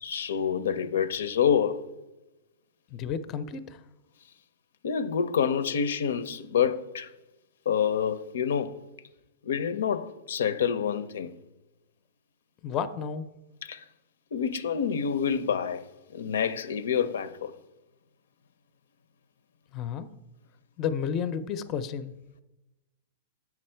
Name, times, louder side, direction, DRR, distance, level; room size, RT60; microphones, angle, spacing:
voice 1, 0.0-1.8 4.8-7.1 7.7-8.8 9.4-11.3 13.6-13.8 14.3-15.9 16.1-17.5, left 7 dB, 85° left, 0.5 m, -27 dB
voice 2, 2.9-3.8 12.6-13.3 19.7-20.1 20.8-22.1, left 7 dB, 30° left, 0.4 m, -31 dB
7.6 x 5.9 x 4.4 m
hypercardioid pair, 150°, 0 cm